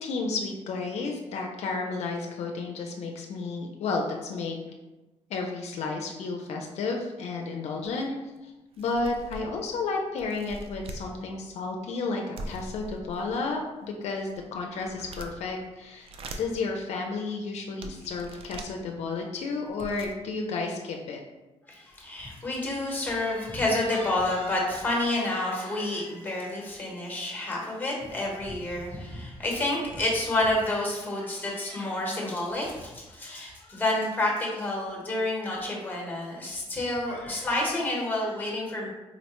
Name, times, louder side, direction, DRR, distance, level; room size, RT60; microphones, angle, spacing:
voice 1, 0.0-4.6 5.3-8.2 8.4-8.5 8.8-13.6 14.0-16.1 16.4-21.2, left 3 dB, 75° left, 1 dB, 0.4 m, -32 dB
sound 1, 7.8-7.9 8.4-8.5 8.7-9.7 10.2-11.1 12.4-13.4 14.0-15.5 15.9-16.6 17.2-17.3 17.8-18.7 19.4-19.5 19.7-20.1, right 2 dB, 55° right, 0.3 m, -42 dB
voice 2, 21.7-38.9, left 1 dB, 15° left, -2 dB, 0.9 m, -29 dB
3.9 x 2.1 x 2.9 m, 1.1 s
cardioid pair, 130°, 11 cm